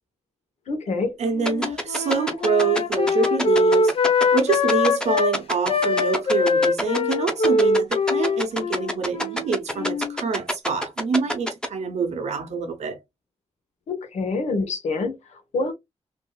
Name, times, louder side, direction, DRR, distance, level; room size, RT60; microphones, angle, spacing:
voice 1, 0.7-1.1 13.9-15.7, left 3 dB, 85° left, 1.1 m, -26 dB
voice 2, 1.2-4.0 4.3-13.0, right 5 dB, 85° right, 0.9 m, -26 dB
Wind instrument woodwind instrument, 1.4-5.4 5.7-10.2, left 3 dB, 55° left, 0.6 m, -22 dB
sound 1, 1.5-11.7, equal, 5° left, 0.8 m, -25 dB
3.6 x 2.7 x 2.2 m
wide cardioid pair, 105°, 11 cm